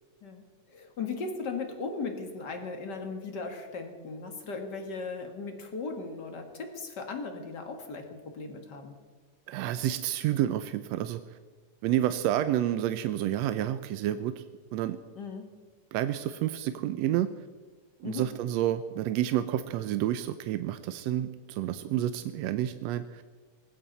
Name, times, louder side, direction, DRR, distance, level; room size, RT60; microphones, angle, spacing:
voice 1, 0.2-8.9 15.2-15.5 18.0-18.3, left 4 dB, 40° left, 4 dB, 2.0 m, -37 dB
voice 2, 9.5-11.2 11.8-14.4 14.7-15.0 15.9-17.3 18.0-23.2, right 12 dB, 80° right, 10 dB, 1.6 m, -29 dB
19.5 x 15.5 x 4.1 m, 1.5 s
omnidirectional pair, 3.5 m